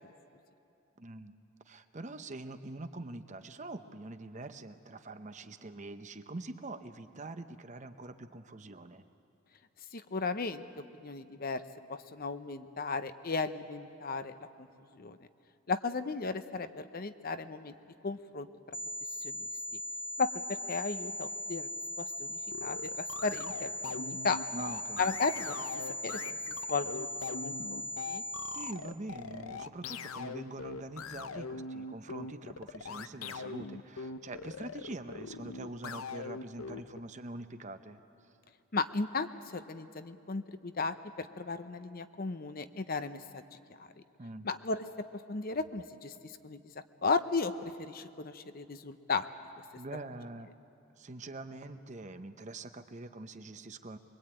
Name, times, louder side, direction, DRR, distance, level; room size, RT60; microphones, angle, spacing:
voice 1, 1.0-1.3 1.7-9.0 24.5-25.0 28.4-38.0 44.2-44.5 49.8-50.5 51.0-54.0, right 2 dB, 35° right, 9 dB, 0.9 m, -44 dB
voice 2, 9.9-10.6 11.0-11.6 11.9-14.7 14.9-15.2 15.7-17.7 18.0-18.5 19.2-19.5 20.2-21.7 22.0-24.4 25.0-25.6 26.0-27.1 27.4-28.2 38.7-43.4 44.4-44.8 45.3-46.6 47.0-49.3, left 4 dB, 45° left, 10 dB, 0.8 m, -35 dB
sound 1, 18.7-28.7, left 1 dB, 10° left, 0.7 m, -39 dB
sound 2, 22.5-37.0, left 4 dB, 90° left, 0.7 m, -42 dB
23.5 x 22.5 x 9.0 m, 2.8 s
head